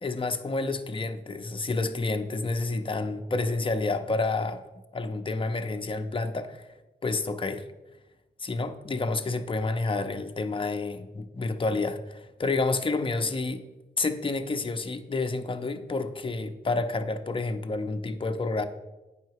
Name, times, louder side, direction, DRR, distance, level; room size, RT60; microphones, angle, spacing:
voice 1, 0.0-4.6 4.9-6.6 7.0-7.6 8.4-13.6 14.0-18.6, left 3 dB, 25° left, 7 dB, 0.6 m, -29 dB
8.8 x 5.6 x 4.7 m, 1.1 s
wide cardioid pair, 90°, 19 cm